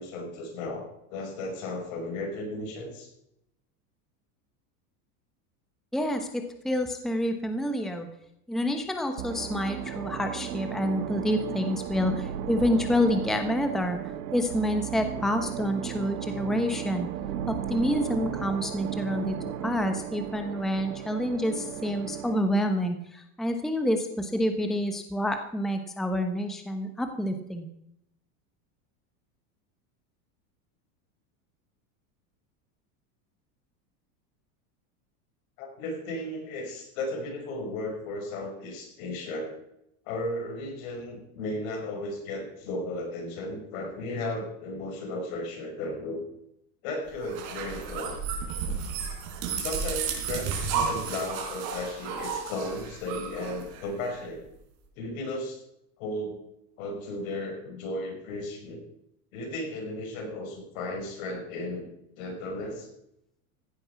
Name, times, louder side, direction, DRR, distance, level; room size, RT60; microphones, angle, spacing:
voice 1, 0.0-3.1 35.6-39.5 40.1-46.2 46.8-48.2 49.6-54.5 55.0-55.6 56.0-56.4 56.8-58.8 59.3-61.9 62.2-62.9, left 1 dB, 65° left, 2 dB, 5.2 m, -35 dB
voice 2, 5.9-8.1 8.5-14.0 14.3-17.1 17.5-27.7, equal, ahead, 6 dB, 1.0 m, -28 dB
sound 1, 9.2-22.5, right 10 dB, 85° right, 1.5 m, -35 dB
sound 2, 47.2-54.2, right 6 dB, 55° right, 4.4 m, -33 dB
15.5 x 9.7 x 5.8 m, 0.80 s
supercardioid pair, 135°, 44 cm